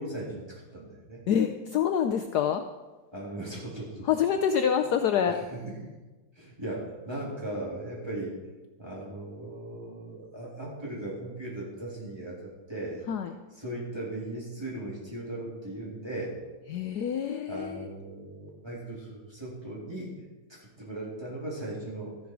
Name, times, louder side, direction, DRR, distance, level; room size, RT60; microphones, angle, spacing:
voice 1, 0.0-1.3 3.1-4.1 5.3-6.0 6.3-8.4 8.8-13.1 13.6-16.4 17.5-20.2 20.5-22.2, right 1 dB, 10° right, -6 dB, 3.4 m, -38 dB
voice 2, 1.3-2.6 4.1-5.4 13.1-13.3 16.7-17.9, left 8 dB, 75° left, 7 dB, 0.9 m, -26 dB
13.5 x 11.0 x 4.7 m, 1.2 s
omnidirectional pair, 2.4 m